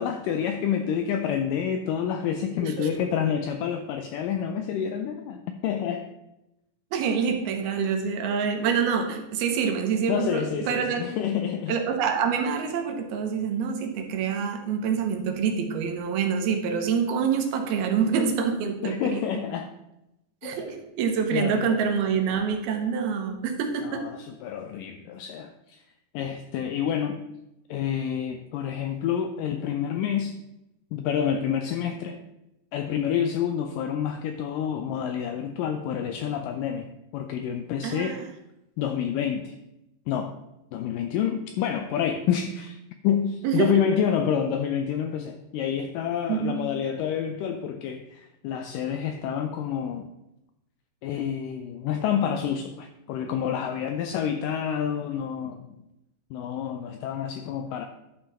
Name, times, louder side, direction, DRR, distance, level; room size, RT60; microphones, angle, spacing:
voice 1, 0.0-6.1 10.1-11.8 18.8-19.7 20.4-20.6 21.3-21.8 23.8-25.8 26.1-27.2 27.7-30.4 30.9-32.2 32.7-38.2 38.8-39.6 40.1-40.4 40.7-42.8 43.0-50.1 51.0-55.8 56.3-57.9, left 8 dB, 85° left, 7 dB, 1.9 m, -28 dB
voice 2, 6.9-11.0 11.7-19.4 20.4-24.1 37.8-38.2 43.4-43.8 46.3-46.6, right 6 dB, 85° right, 4 dB, 2.9 m, -26 dB
11.0 x 5.5 x 4.2 m, 0.91 s
omnidirectional pair, 4.4 m